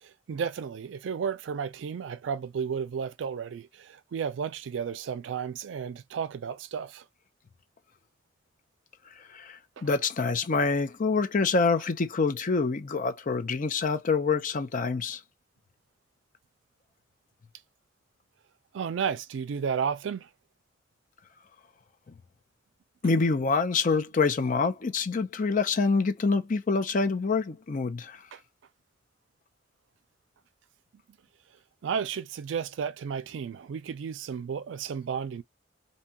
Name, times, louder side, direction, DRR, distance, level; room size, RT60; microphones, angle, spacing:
voice 1, 0.0-7.1 18.7-20.3 28.3-28.4 31.8-35.4, right 7 dB, 85° right, 0.4 m, -33 dB
voice 2, 9.3-15.2 23.0-28.2, left 4 dB, 45° left, 0.5 m, -26 dB
2.7 x 2.3 x 2.7 m
head